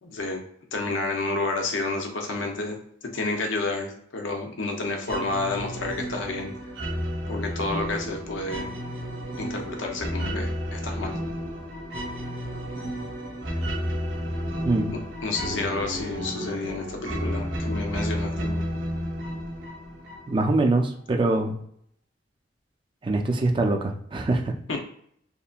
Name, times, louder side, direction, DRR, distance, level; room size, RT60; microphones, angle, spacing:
voice 1, 0.0-0.4 0.7-2.8 3.0-6.5 7.3-8.7 9.4-11.2 15.2-18.6 24.7-24.8, left 3 dB, 85° left, 3 dB, 0.6 m, -30 dB
sound 1, 5.1-20.6, equal, 85° right, 0.8 m, -32 dB
voice 2, 20.3-21.6 23.0-24.5, right 2 dB, 25° right, 3 dB, 0.4 m, -23 dB
2.8 x 2.5 x 2.3 m, 0.66 s
head